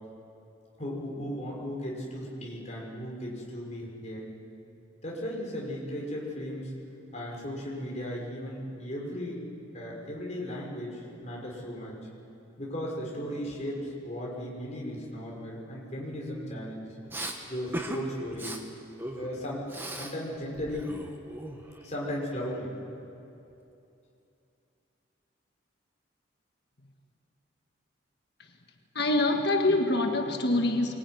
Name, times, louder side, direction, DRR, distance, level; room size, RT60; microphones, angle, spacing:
voice 1, 0.8-4.3 5.0-6.7 7.1-9.4 9.7-12.0 12.6-16.9 17.5-18.5 19.2-19.6 20.0-20.9 21.8-22.8, equal, 35° left, -3 dB, 5.7 m, -36 dB
Respiratory sounds, 17.1-17.4 17.7-18.0 18.3-18.6 19.0-20.1 20.4-21.8, right 1 dB, 10° right, 1.7 m, -38 dB
voice 2, 29.0-31.0, left 2 dB, 55° left, 3 dB, 1.7 m, -25 dB
24.0 x 21.5 x 9.7 m, 2.8 s
head